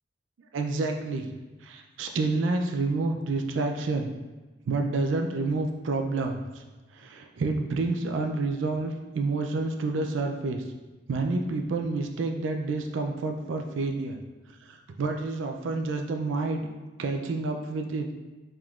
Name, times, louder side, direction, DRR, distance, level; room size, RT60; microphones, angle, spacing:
voice 1, 0.5-1.3 1.6-4.1 4.7-6.6 6.9-10.6 11.1-14.2 14.6-16.7 17.0-18.1, right 3 dB, 80° right, 4 dB, 0.4 m, -29 dB
4.8 x 3.6 x 2.3 m, 1.2 s
head